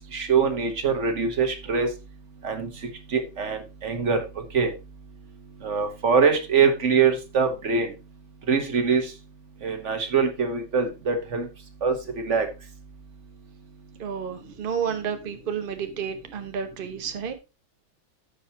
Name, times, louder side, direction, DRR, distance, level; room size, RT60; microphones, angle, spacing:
voice 1, 0.1-1.9 2.4-2.7 3.1-4.2 4.5-4.7 5.6-7.9 8.5-9.0 9.6-11.5 11.8-12.0 12.3-12.5, right 5 dB, 40° right, 1.4 m, -23 dB
voice 2, 14.0-17.3, right 7 dB, 60° right, 0.5 m, -31 dB
14.5 x 5.1 x 2.9 m
omnidirectional pair, 2.3 m